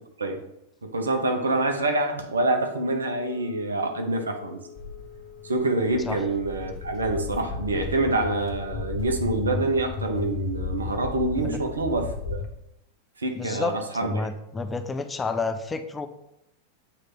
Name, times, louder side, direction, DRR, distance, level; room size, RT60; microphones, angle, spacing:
voice 1, 0.8-4.6 5.4-12.4 13.2-14.2, right 2 dB, 75° right, 4 dB, 0.7 m, -26 dB
Wind instrument woodwind instrument, 3.0-10.2, left 7 dB, 35° right, 1.4 m, -47 dB
Walk footsteps, 4.8-12.5, left 4 dB, 40° left, 0.7 m, -34 dB
voice 2, 13.4-16.1, left 3 dB, 15° left, 8 dB, 0.4 m, -30 dB
7.5 x 3.2 x 4.1 m, 0.81 s
figure-of-eight pair, 90°, 0 cm